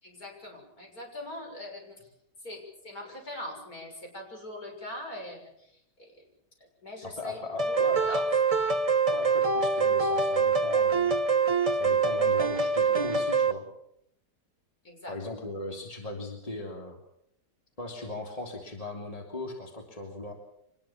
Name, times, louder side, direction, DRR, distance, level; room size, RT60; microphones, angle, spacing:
voice 1, 0.0-2.0 2.4-5.7 6.0-6.3 6.8-8.2 14.8-15.2, left 1 dB, 55° left, 2 dB, 7.1 m, -42 dB
voice 2, 7.2-8.2 9.1-11.2 11.7-13.7 15.1-17.0 17.8-20.3, left 2 dB, 20° left, 2 dB, 3.3 m, -38 dB
sound 1, 7.6-13.5, right 4 dB, 25° right, 0.9 m, -25 dB
25.0 x 20.0 x 7.3 m, 0.75 s
omnidirectional pair, 1.9 m